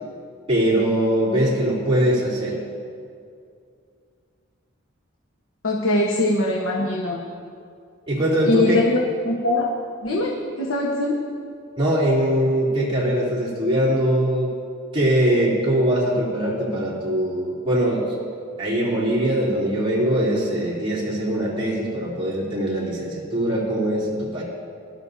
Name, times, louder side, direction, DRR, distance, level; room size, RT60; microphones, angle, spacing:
voice 1, 0.5-2.6 8.1-8.8 11.8-14.5 14.9-18.0 18.6-24.4, right 1 dB, 25° right, -7 dB, 3.2 m, -22 dB
voice 2, 5.6-7.3 8.4-9.0 9.2-9.7 10.0-11.2, left 2 dB, 75° left, -2 dB, 1.2 m, -22 dB
20.5 x 12.5 x 2.8 m, 2.3 s
head